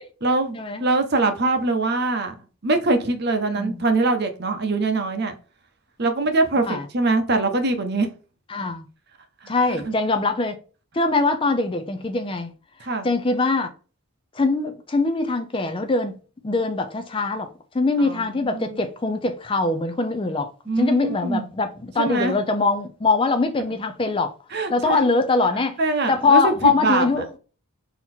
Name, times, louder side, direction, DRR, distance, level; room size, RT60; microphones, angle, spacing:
voice 1, 0.2-2.3 2.6-5.4 6.0-8.1 9.4-10.0 12.8-13.1 18.0-18.8 20.7-21.5 22.0-22.4 24.5-25.1 25.8-27.2, right 3 dB, 50° right, 0.8 m, -23 dB
voice 2, 8.5-8.9 9.5-10.5 10.9-12.5 13.0-13.7 14.3-16.2 16.4-20.5 20.8-24.3 24.7-25.8 26.1-27.3, left 3 dB, 25° left, 0.4 m, -22 dB
3.9 x 2.9 x 4.2 m
head